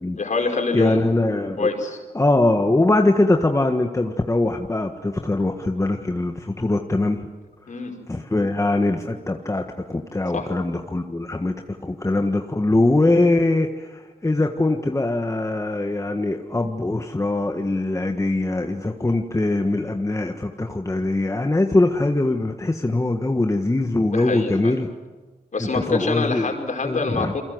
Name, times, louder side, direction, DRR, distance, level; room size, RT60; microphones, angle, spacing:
voice 1, 0.2-1.1 1.6-2.0 7.7-8.0 10.3-10.5 24.1-24.8 25.5-27.4, left 3 dB, 50° left, 3 dB, 5.3 m, -25 dB
voice 2, 0.7-1.7 2.1-7.3 8.1-24.9 25.6-26.6 26.8-27.3, left 2 dB, 20° left, 4 dB, 1.5 m, -22 dB
28.5 x 22.5 x 7.9 m, 1.3 s
cardioid pair, 75°, 16 cm